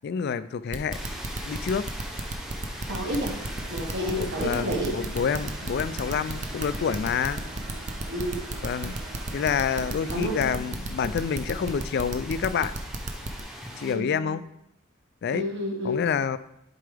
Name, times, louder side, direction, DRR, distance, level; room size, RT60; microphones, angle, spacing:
voice 1, 0.0-1.0 1.4-1.9 4.2-7.4 8.6-9.0 9.3-12.7 13.8-14.4 15.2-15.4 15.8-16.4, left 6 dB, 50° left, 14 dB, 0.3 m, -28 dB
sound 1, 0.7-13.4, right 2 dB, 35° right, 0.6 m, -33 dB
sound 2, 0.9-13.9, equal, ahead, 0.8 m, -41 dB
voice 2, 2.9-3.4 3.7-4.9 8.1-8.4 10.1-10.5 13.8-14.4 15.3-16.0, equal, 60° right, 0 dB, 1.6 m, -30 dB
sound 3, 3.2-10.6, right 3 dB, 90° right, 1.5 m, -45 dB
11.0 x 4.6 x 3.4 m, 0.80 s
head